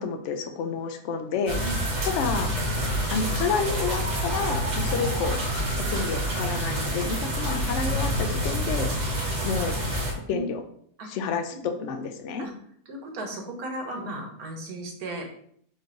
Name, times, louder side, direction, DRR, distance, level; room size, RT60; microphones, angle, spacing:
voice 1, 0.0-1.6 2.0-2.5 3.1-5.4 5.9-8.9 9.4-9.8 10.3-10.6 11.1-12.5, left 5 dB, 65° left, 7 dB, 0.8 m, -29 dB
sound 1, 1.5-10.1, equal, 30° right, 1.0 m, -27 dB
voice 2, 12.9-15.2, right 1 dB, 70° right, 1 dB, 1.5 m, -35 dB
4.3 x 3.2 x 3.8 m, 0.65 s
omnidirectional pair, 1.6 m